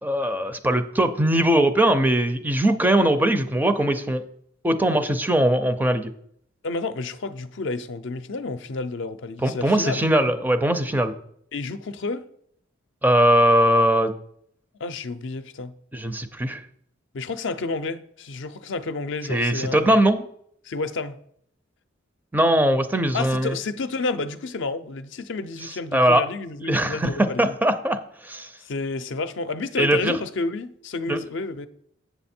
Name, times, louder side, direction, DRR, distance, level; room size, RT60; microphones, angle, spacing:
voice 1, 0.0-4.2 4.6-6.1 9.4-11.1 13.0-14.2 15.9-16.6 19.3-20.2 22.3-23.6 25.6-26.2 26.6-28.5 29.8-30.2 31.1-31.2, right 1 dB, 10° right, 0.4 m, -21 dB
voice 2, 6.6-10.1 11.5-12.3 14.8-15.7 17.1-20.0 20.6-21.2 23.1-27.6 28.6-31.7, left 3 dB, 60° left, 0.5 m, -30 dB
7.3 x 7.0 x 4.3 m
head